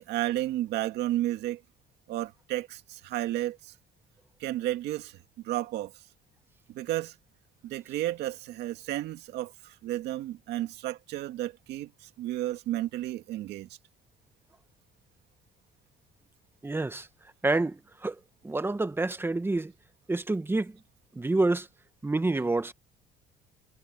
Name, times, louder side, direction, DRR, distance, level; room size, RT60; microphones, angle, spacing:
voice 1, 0.0-1.6 2.1-3.7 4.4-6.0 6.7-7.1 7.6-13.7, right 14 dB, 80° right, 2.3 m, -32 dB
voice 2, 16.6-17.1 17.4-19.7 20.1-20.8 21.1-21.7 22.0-22.7, right 2 dB, 15° right, 1.2 m, -28 dB
cardioid pair, 110°, 17 cm